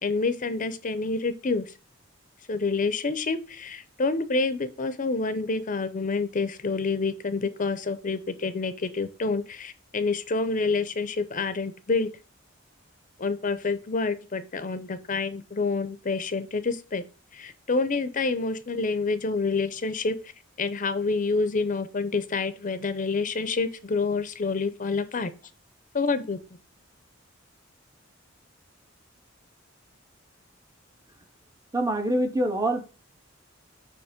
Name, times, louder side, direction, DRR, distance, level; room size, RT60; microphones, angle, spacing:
voice 1, 0.0-1.6 2.5-12.1 13.2-17.0 17.3-20.2 20.6-25.3 25.9-26.4, left 4 dB, 40° left, 0.6 m, -28 dB
voice 2, 31.7-32.8, right 1 dB, 15° right, 0.7 m, -25 dB
7.2 x 3.0 x 4.9 m
head